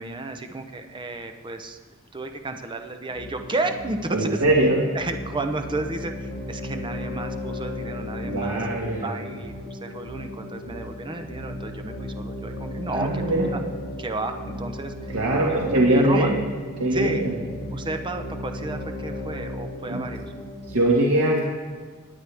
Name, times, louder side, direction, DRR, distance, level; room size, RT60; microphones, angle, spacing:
voice 1, 0.0-1.8 2.1-4.4 4.9-8.6 9.0-13.2 13.5-13.6 14.0-16.3 16.9-17.3 17.7-20.3, right 2 dB, 20° right, 6 dB, 0.7 m, -32 dB
sound 1, 3.1-20.8, left 1 dB, 40° left, 3.0 m, -35 dB
voice 2, 4.1-4.8 8.2-9.1 12.9-13.6 15.1-16.4 16.8-17.3 19.9-20.0 20.7-21.4, right 1 dB, 75° right, -4 dB, 1.7 m, -21 dB
20.0 x 8.7 x 3.4 m, 1.5 s
head